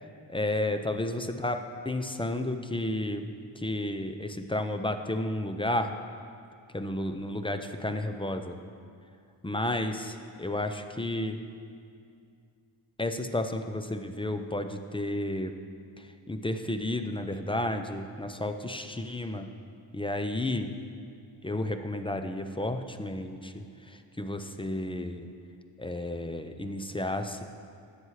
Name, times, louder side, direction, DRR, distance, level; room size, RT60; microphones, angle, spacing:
voice 1, 0.3-1.6 1.9-3.3 3.6-6.0 6.7-8.6 9.4-11.4 13.0-15.6 16.0-19.5 19.9-20.7 21.4-25.3 25.8-27.4, left 1 dB, 10° left, 7 dB, 0.4 m, -32 dB
13.0 x 8.1 x 3.2 m, 2.3 s
wide cardioid pair, 95°, 46 cm